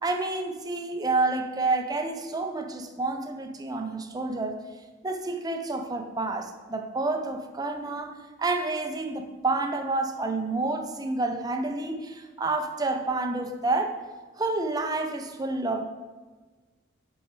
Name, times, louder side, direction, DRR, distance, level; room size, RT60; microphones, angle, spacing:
voice 1, 0.0-4.6 5.0-14.0 14.4-15.8, right 3 dB, 20° right, 5 dB, 0.4 m, -29 dB
5.8 x 5.5 x 4.7 m, 1.3 s
head